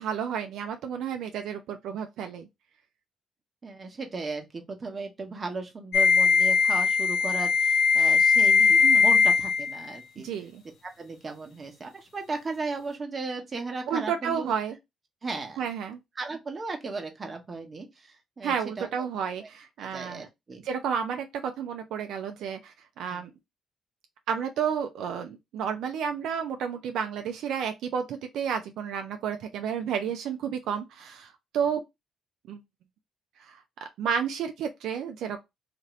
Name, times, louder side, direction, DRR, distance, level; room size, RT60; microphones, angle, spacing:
voice 1, 0.0-2.5 8.8-9.1 10.2-10.6 13.9-14.8 15.6-16.0 18.4-20.3 20.6-23.3 24.3-31.8 32.5-32.6 33.4-33.6 34.0-35.4, right 7 dB, 80° right, 0.3 m, -31 dB
voice 2, 3.6-10.3 10.8-14.5 15.2-15.6 16.2-18.9 19.4-19.5 19.8-20.6 23.0-23.2, right 3 dB, 35° right, 0.9 m, -36 dB
sound 1, 5.9-9.9, left 5 dB, 75° left, 0.7 m, -20 dB
2.6 x 2.5 x 3.0 m
cardioid pair, 90°, 0 cm